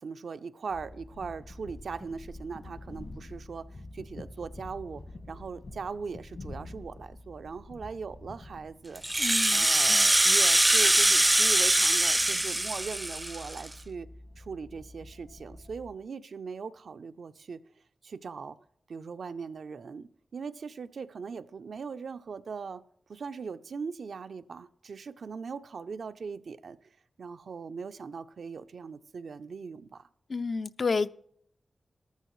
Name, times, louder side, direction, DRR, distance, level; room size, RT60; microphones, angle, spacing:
voice 1, 0.0-5.0 5.3-9.0 9.5-14.1 14.4-17.6 18.0-18.6 18.9-22.8 23.1-26.8 27.2-30.1, right 5 dB, 80° right, 0.5 m, -40 dB
sound 1, 0.7-15.9, left 2 dB, 75° left, 2.2 m, -48 dB
Rattle (instrument), 9.0-13.7, right 1 dB, 15° right, 0.4 m, -23 dB
voice 2, 9.2-10.1 30.3-31.1, left 4 dB, 55° left, 0.3 m, -31 dB
13.5 x 13.0 x 3.1 m
wide cardioid pair, 105°, 0 cm